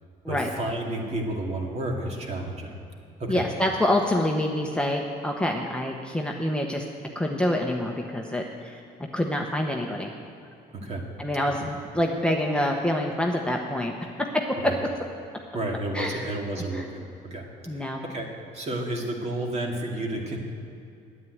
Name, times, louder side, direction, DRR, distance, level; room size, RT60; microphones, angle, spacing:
voice 1, 0.3-2.7 3.2-3.5 10.8-11.0 11.6-11.7 14.6-14.8 15.5-17.5 17.7-18.3 18.5-20.4, right 1 dB, 40° right, 0 dB, 2.2 m, -31 dB
voice 2, 3.3-6.8 7.1-8.8 9.1-10.1 11.2-14.9 15.9-16.2 16.7-16.8 17.7-18.0, left 1 dB, 5° left, 0 dB, 1.0 m, -26 dB
9.4 x 8.5 x 9.4 m, 2.5 s
cardioid pair, 110°, 17 cm